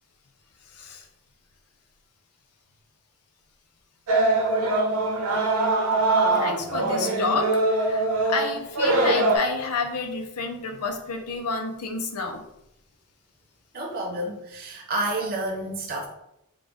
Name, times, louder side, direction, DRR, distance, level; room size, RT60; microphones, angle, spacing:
voice 1, 0.7-1.1 6.3-12.4, left 4 dB, 90° left, 4 dB, 0.6 m, -30 dB
sound 1, 4.1-9.4, right 2 dB, 85° right, 0.8 m, -22 dB
voice 2, 13.7-16.1, right 1 dB, 45° right, -1 dB, 0.6 m, -30 dB
3.8 x 2.4 x 3.4 m, 0.84 s
head